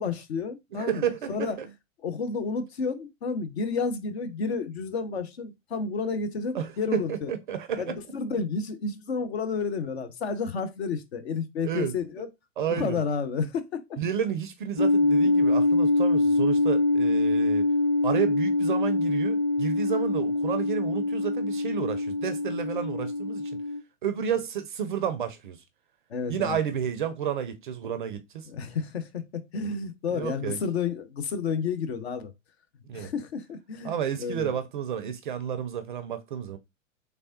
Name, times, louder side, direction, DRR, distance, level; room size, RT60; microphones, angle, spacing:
voice 1, 0.0-1.6 2.0-7.3 7.8-12.3 12.7-14.0 26.1-26.6 28.5-32.3 32.9-34.5, left 5 dB, 50° left, 0.7 m, -31 dB
voice 2, 0.7-1.7 6.5-8.0 11.6-12.3 12.6-13.0 14.0-17.6 18.0-23.6 24.0-25.6 26.3-28.5 30.1-30.6 32.9-33.1 33.8-36.6, right 8 dB, 40° right, 0.4 m, -31 dB
sound 1, 14.8-23.8, left 2 dB, 35° left, 1.8 m, -24 dB
3.3 x 3.3 x 2.6 m
figure-of-eight pair, 100°, 40 cm